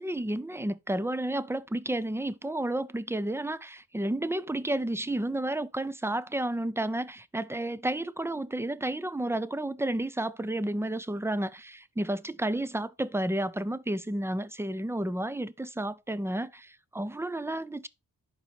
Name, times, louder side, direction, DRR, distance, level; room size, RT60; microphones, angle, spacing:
voice 1, 0.0-17.9, right 1 dB, 5° right, 0.3 m, -31 dB
10.5 x 4.1 x 4.2 m
wide cardioid pair, 135°, 41 cm